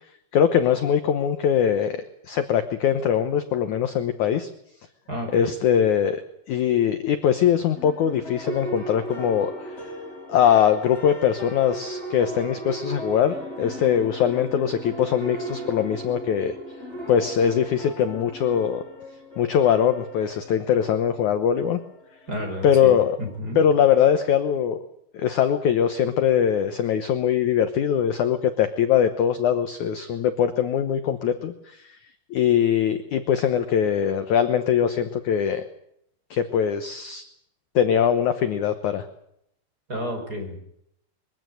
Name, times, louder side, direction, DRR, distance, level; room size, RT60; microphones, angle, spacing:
voice 1, 0.3-4.5 5.3-6.2 6.5-9.8 10.3-16.6 17.1-18.8 19.4-21.8 22.6-23.2 23.6-24.8 25.1-31.9 32.3-35.6 36.3-37.2 37.8-39.1, left 8 dB, 65° left, 9 dB, 2.0 m, -22 dB
voice 2, 5.1-5.5 22.3-23.6 39.9-40.6, equal, 20° right, 3 dB, 5.5 m, -31 dB
sound 1, 7.8-23.4, equal, 15° left, 5.7 m, -37 dB
23.0 x 15.5 x 9.3 m, 0.75 s
omnidirectional pair, 4.6 m